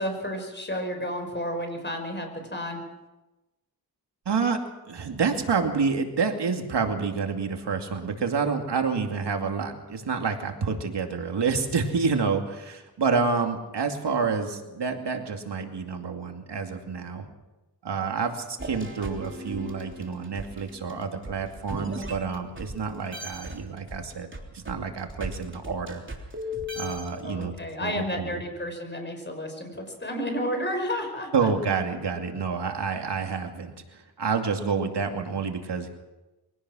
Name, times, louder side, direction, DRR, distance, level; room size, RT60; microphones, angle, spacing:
voice 1, 0.0-2.8 27.2-31.5, equal, 25° left, 5 dB, 5.6 m, -31 dB
voice 2, 4.3-4.6 4.9-17.2 17.8-24.3 24.5-26.0 26.7-27.5 27.8-28.4 31.3-35.9, right 5 dB, 80° right, 4 dB, 2.5 m, -28 dB
sound 1, 18.6-22.8 23.1-27.5, equal, 30° right, 3.4 m, -37 dB
24.0 x 17.5 x 6.3 m, 1.0 s
wide cardioid pair, 90°, 41 cm